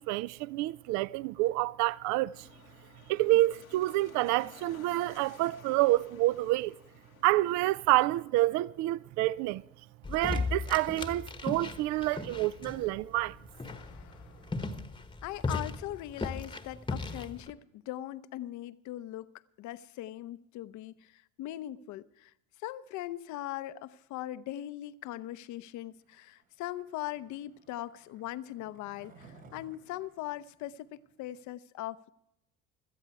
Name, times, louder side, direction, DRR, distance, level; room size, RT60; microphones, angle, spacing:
voice 1, 0.0-2.5 3.1-6.8 7.2-9.6 10.1-13.4, right 17 dB, 45° right, 0.5 m, -28 dB
sound 1, 2.3-8.0, left 7 dB, 85° left, 1.4 m, -56 dB
sound 2, 10.0-17.5, left 3 dB, 10° left, 1.1 m, -37 dB
voice 2, 13.6-14.7 15.2-19.3 19.6-22.3 22.6-32.1, left 14 dB, 45° left, 0.7 m, -40 dB
Skateboard, 26.0-31.4, right 3 dB, 80° right, 3.4 m, -59 dB
17.0 x 13.0 x 4.7 m
figure-of-eight pair, 65°, 41 cm